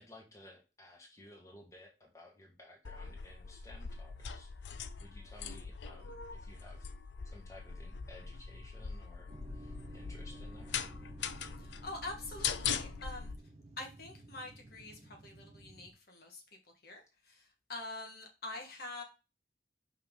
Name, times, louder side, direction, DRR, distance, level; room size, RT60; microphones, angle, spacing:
voice 1, 0.0-4.7 5.0-6.9 7.2-10.8, left 1 dB, 15° left, 0 dB, 1.7 m, -56 dB
sound 1, 2.8-13.3, left 7 dB, 75° left, 0.6 m, -41 dB
sound 2, 9.3-15.9, right 1 dB, 35° right, 1.2 m, -53 dB
voice 2, 11.6-13.3 13.8-16.6 16.8-19.0, left 2 dB, 55° left, 2 dB, 1.5 m, -45 dB
5.7 x 5.7 x 3.7 m, 0.30 s
head